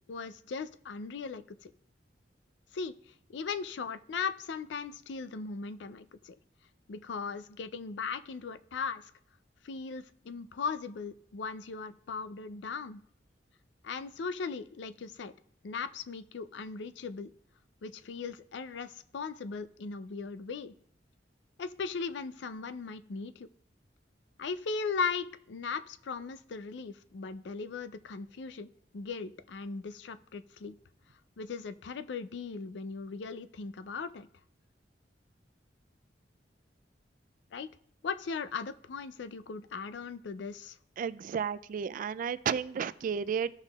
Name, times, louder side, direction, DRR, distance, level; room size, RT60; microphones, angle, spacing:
voice 1, 0.1-1.7 2.7-6.3 6.9-9.1 9.6-13.0 13.8-15.3 15.6-17.3 17.8-20.7 21.6-23.5 24.4-30.8 31.4-34.3 37.5-37.7 38.0-40.8, left 5 dB, 75° left, 13 dB, 0.4 m, -38 dB
voice 2, 41.0-43.5, right 7 dB, 50° right, 16 dB, 0.3 m, -32 dB
16.0 x 5.7 x 2.3 m, 0.65 s
head